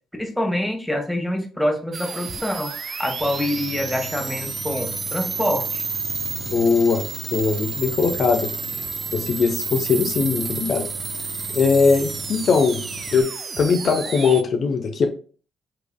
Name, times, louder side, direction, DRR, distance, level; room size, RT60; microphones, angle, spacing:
voice 1, 0.2-2.7 3.0-5.8, left 1 dB, 5° left, 2 dB, 1.3 m, -25 dB
sound 1, 1.9-14.4, right 5 dB, 45° right, 0.5 m, -31 dB
Engine, 3.2-13.2, left 1 dB, 20° left, 1.6 m, -38 dB
voice 2, 6.5-7.0 7.3-8.5 9.1-10.9 11.5-12.8 13.1-13.3 13.6-15.1, left 5 dB, 55° left, 4 dB, 0.8 m, -20 dB
5.8 x 3.3 x 2.2 m, 0.39 s
cardioid pair, 90°, 0 cm